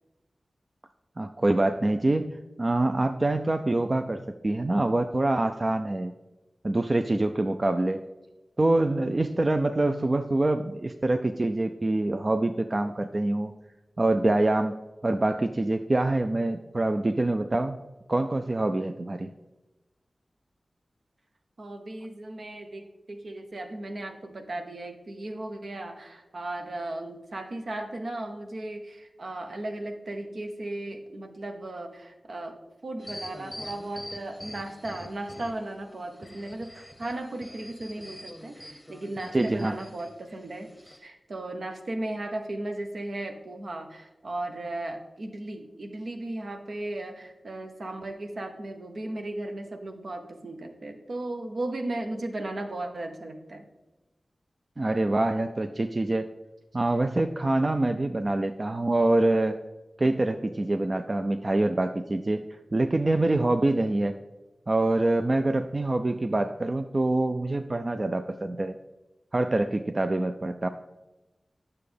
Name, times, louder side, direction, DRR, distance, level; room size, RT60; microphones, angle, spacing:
voice 1, 1.2-2.3 2.6-6.1 6.6-8.0 8.6-13.5 14.0-14.7 15.0-17.8 18.1-19.3 39.3-39.8 54.8-56.3 56.7-59.6 60.0-64.2 64.7-68.8 69.3-70.7, right 2 dB, 40° right, 7 dB, 0.4 m, -25 dB
voice 2, 21.6-53.7, right 1 dB, 70° right, 4 dB, 0.9 m, -36 dB
sound 1, 33.0-35.7 36.1-40.1 40.6-41.0, left 1 dB, 20° left, 0.8 m, -44 dB
9.2 x 6.7 x 3.4 m, 1.1 s
cardioid pair, 55°, 0 cm